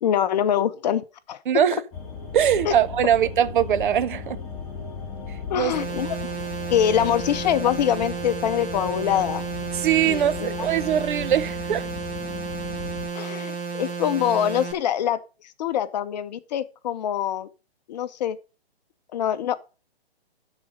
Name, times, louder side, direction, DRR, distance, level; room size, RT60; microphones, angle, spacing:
voice 1, 0.0-1.4 2.6-2.7 5.5-6.2 6.7-9.4 10.0-10.6 13.1-15.2 15.6-17.5 17.9-18.4 19.1-19.6, left 10 dB, 40° left, 0.8 m, -24 dB
voice 2, 1.5-1.8 2.3-4.4 5.5-5.7 9.7-11.9, right 10 dB, 50° right, 0.7 m, -21 dB
sound 1, 1.9-13.1, left 5 dB, 20° left, 4.7 m, -37 dB
sound 2, 5.7-14.7, right 5 dB, 15° right, 1.8 m, -32 dB
12.5 x 4.2 x 4.9 m
hypercardioid pair, 145°, 32 cm